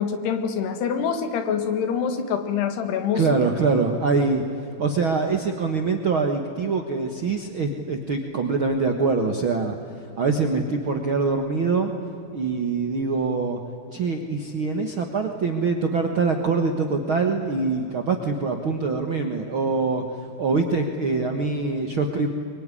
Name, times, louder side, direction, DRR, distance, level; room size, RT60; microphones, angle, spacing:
voice 1, 0.0-3.3, left 7 dB, 90° left, 9 dB, 3.9 m, -25 dB
voice 2, 3.1-4.4 4.8-9.8 10.2-11.9 12.3-13.6 13.9-20.0 20.4-22.3, right 4 dB, 60° right, 4 dB, 1.3 m, -24 dB
23.5 x 23.0 x 9.9 m, 2.7 s
omnidirectional pair, 4.6 m